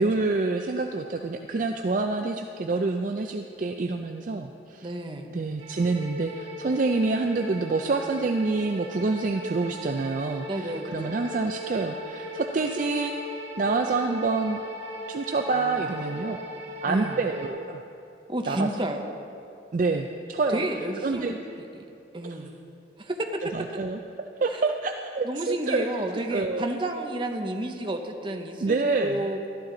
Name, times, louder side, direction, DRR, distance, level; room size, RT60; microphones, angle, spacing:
voice 1, 0.0-4.9 5.3-13.1 13.6-14.6 15.1-16.4 16.8-17.8 18.5-18.7 19.7-20.6 21.0-21.3 22.2-22.4 23.5-24.0 24.4-25.9 26.3-26.7 28.6-29.3, right 3 dB, 45° right, 4 dB, 0.4 m, -27 dB
voice 2, 4.8-5.3 10.5-11.1 15.5-16.1 16.8-17.2 18.3-19.1 20.5-21.9 22.1-22.5 23.0-23.3 24.5-24.6 25.2-29.5, right 1 dB, 25° right, 3 dB, 0.7 m, -31 dB
sound 1, 5.6-17.5, equal, 70° right, 1.7 m, -38 dB
13.0 x 11.5 x 3.8 m, 2.7 s
head